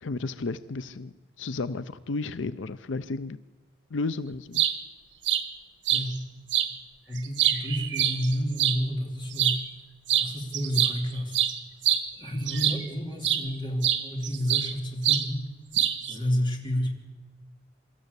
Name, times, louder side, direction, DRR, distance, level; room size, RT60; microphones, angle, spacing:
voice 1, 0.0-3.4 3.9-4.6, left 3 dB, 85° left, 14 dB, 0.6 m, -33 dB
sound 1, 4.3-4.7 5.2-5.4 5.9-6.0 6.5-6.7 7.2-8.8 9.3-9.6 10.1-10.3 10.5-12.9 13.2-13.4 13.8-14.7 15.0-15.3 15.7-16.1, right 10 dB, 75° right, 1.6 m, -25 dB
voice 2, 5.9-6.2 7.1-9.6 10.2-11.4 12.2-15.4 16.1-16.9, equal, 25° left, 2 dB, 3.0 m, -30 dB
25.0 x 13.5 x 8.2 m, 1.3 s
head